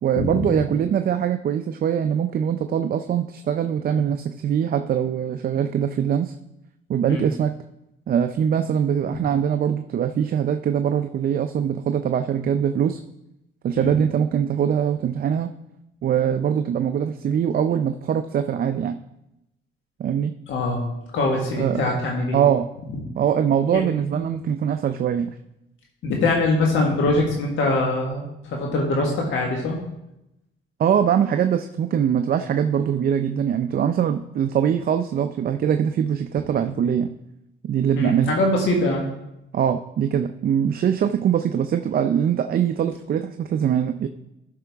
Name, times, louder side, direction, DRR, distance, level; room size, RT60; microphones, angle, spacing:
voice 1, 0.0-6.3 6.9-7.5 8.1-13.0 13.6-15.5 16.0-19.0 20.0-20.3 21.6-21.9 22.3-22.7 23.1-25.3 30.8-37.1 37.6-38.4 39.5-44.1, right 8 dB, 50° right, 7 dB, 0.5 m, -22 dB
voice 2, 20.5-20.8 21.1-22.4 23.7-24.2 26.0-29.8 38.0-39.0, left 2 dB, 80° left, 0 dB, 1.5 m, -23 dB
12.5 x 5.6 x 3.5 m, 0.86 s
cardioid pair, 90°, 20 cm